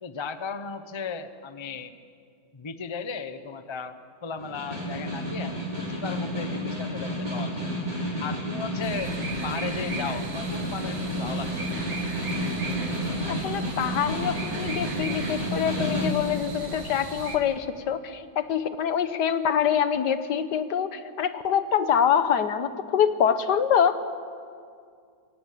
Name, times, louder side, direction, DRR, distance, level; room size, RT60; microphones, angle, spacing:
voice 1, 0.0-1.9 2.5-7.5 8.2-9.1 9.4-11.7, left 5 dB, 35° left, 10 dB, 0.4 m, -36 dB
Snare drum, 4.4-16.2, equal, 20° right, 5.4 m, -31 dB
sound 1, 8.8-17.4, right 3 dB, 80° right, 2.5 m, -38 dB
voice 2, 13.3-24.0, left 8 dB, 65° left, 11 dB, 1.5 m, -25 dB
22.5 x 17.0 x 8.5 m, 2.3 s
omnidirectional pair, 2.0 m